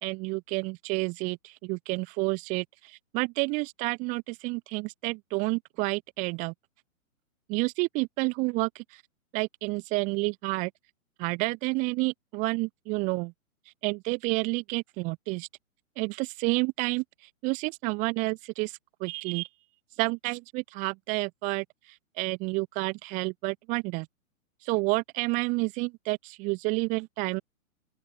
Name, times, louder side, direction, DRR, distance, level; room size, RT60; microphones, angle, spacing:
voice 1, 0.0-6.5 7.5-8.8 9.3-10.7 11.2-13.3 13.8-15.5 16.0-17.0 17.4-18.7 19.0-19.5 20.0-21.6 22.2-24.1 24.6-27.4, right 27 dB, 15° right, 1.2 m, -29 dB
open air
hypercardioid pair, 155°, 43 cm